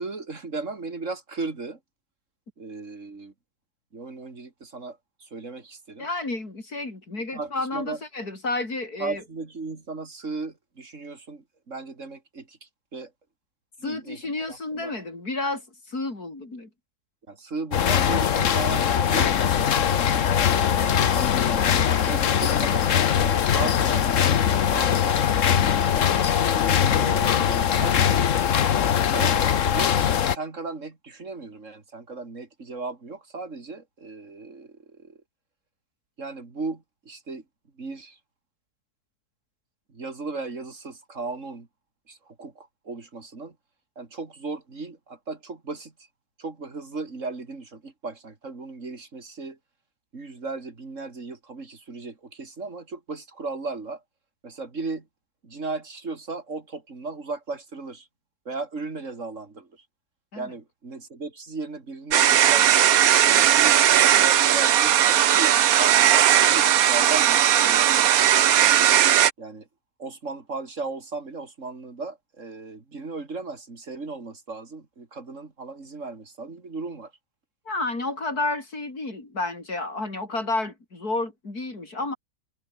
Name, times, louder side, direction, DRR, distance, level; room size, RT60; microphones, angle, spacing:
voice 1, 0.0-1.8 2.6-3.3 3.9-6.1 7.3-8.0 9.0-13.1 13.8-14.9 17.3-25.4 26.9-28.2 29.1-35.2 36.2-37.4 37.7-38.2 39.9-41.7 42.1-43.6 44.0-45.9 46.4-49.6 50.1-54.0 54.4-55.1 55.4-58.1 58.4-59.7 60.4-62.7 63.2-68.6 69.4-69.7 70.0-77.1, right 3 dB, 55° right, 3.1 m, -36 dB
voice 2, 6.0-9.2 13.8-15.6 15.9-16.7 60.3-60.5 77.7-82.2, left 2 dB, 85° left, 6.0 m, -31 dB
Die Sinking Workshop, 17.7-30.4, left 8 dB, 60° left, 1.4 m, -21 dB
sound 1, 62.1-69.3, right 11 dB, 75° right, 1.3 m, -18 dB
omnidirectional pair, 1.6 m